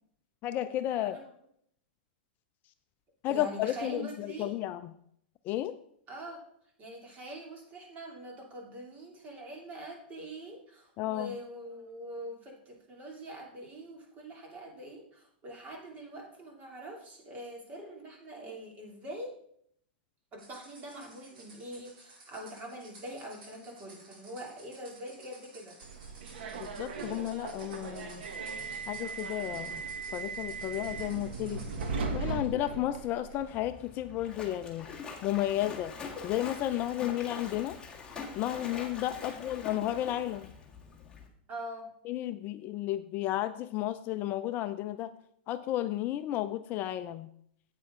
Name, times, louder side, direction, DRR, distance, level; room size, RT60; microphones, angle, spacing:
voice 1, 0.4-1.2 3.2-4.9 5.4-5.7 11.0-11.3 26.6-28.2 28.9-29.8 30.1-31.6 32.1-34.9 35.2-35.9 36.2-37.8 38.4-40.5 42.1-45.1 45.5-47.3, left 13 dB, 35° left, 11 dB, 0.4 m, -33 dB
voice 2, 1.0-1.3 3.3-4.6 6.1-6.4 6.8-19.3 20.3-25.8 39.2-39.4 41.5-41.9, right 1 dB, 25° right, 0 dB, 2.7 m, -44 dB
sound 1, 20.4-31.9, right 2 dB, 55° right, 4.3 m, -55 dB
Subway metro underground, 25.8-33.4, right 4 dB, 75° right, 1.4 m, -38 dB
Splash splatter, 33.4-41.3, left 5 dB, 15° left, 1.8 m, -44 dB
9.3 x 8.3 x 3.7 m, 0.68 s
hypercardioid pair, 140°, 6 cm